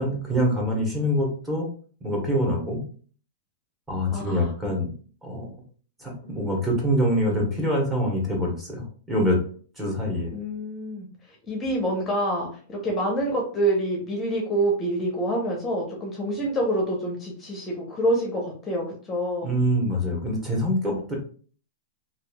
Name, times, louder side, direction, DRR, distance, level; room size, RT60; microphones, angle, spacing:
voice 1, 0.0-1.7 2.0-2.9 3.9-4.9 5.2-5.5 6.0-9.4 9.8-10.3 19.4-21.1, equal, 10° right, -2 dB, 1.1 m, -25 dB
voice 2, 4.1-4.5 10.3-19.5, right 1 dB, 20° left, -1 dB, 0.7 m, -27 dB
2.9 x 2.4 x 2.2 m, 0.43 s
hypercardioid pair, 130°, 0 cm